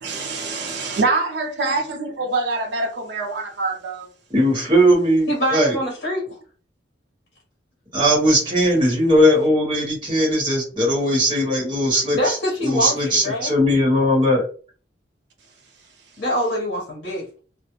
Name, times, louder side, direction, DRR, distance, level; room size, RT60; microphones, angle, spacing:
voice 1, 0.0-4.1, right 3 dB, 60° right, 0.5 m, -25 dB
voice 2, 4.3-5.8 7.9-12.4 12.6-14.4, equal, 25° right, 1.1 m, -18 dB
voice 3, 5.3-6.4 12.1-13.5 16.2-17.2, equal, 50° left, 1.0 m, -24 dB
2.4 x 2.1 x 2.9 m
head